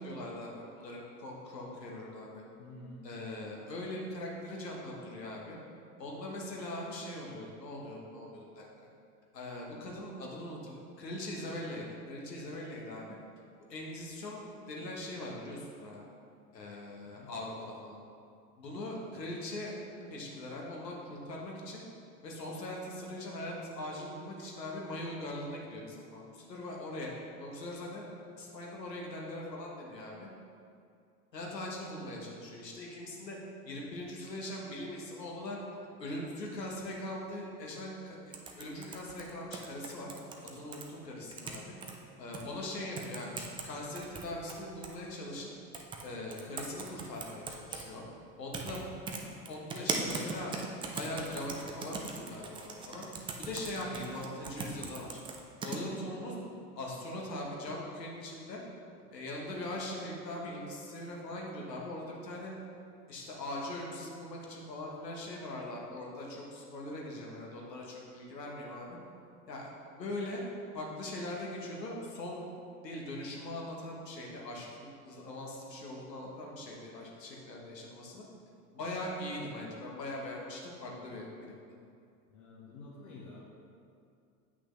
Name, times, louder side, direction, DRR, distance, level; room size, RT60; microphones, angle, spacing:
voice 1, 0.0-2.4 3.0-5.6 6.0-8.7 9.3-13.2 13.7-16.0 16.5-18.0 18.6-19.7 20.0-21.8 22.2-27.1 27.4-28.0 28.4-30.3 31.3-33.4 33.6-35.6 36.0-40.1 40.4-41.7 42.2-45.5 46.0-48.0 48.4-48.8 49.2-50.5 50.9-55.1 55.6-56.4 56.8-58.6 59.1-62.5 63.1-69.0 69.5-70.4 70.7-72.5 72.8-78.2 78.7-81.6, left 1 dB, 85° left, -2 dB, 1.4 m, -41 dB
voice 2, 2.6-3.1 17.0-17.3 82.3-83.5, left 2 dB, 60° left, -5 dB, 1.2 m, -49 dB
sound 1, 38.3-40.8 41.3-41.9 42.3-42.4 43.0-43.7 44.0-45.0 45.7-46.0 46.3-47.8 48.5-48.8 49.1-55.8, right 4 dB, 10° right, 0.3 m, -39 dB
8.0 x 5.8 x 3.2 m, 2.4 s
hypercardioid pair, 85°, 48 cm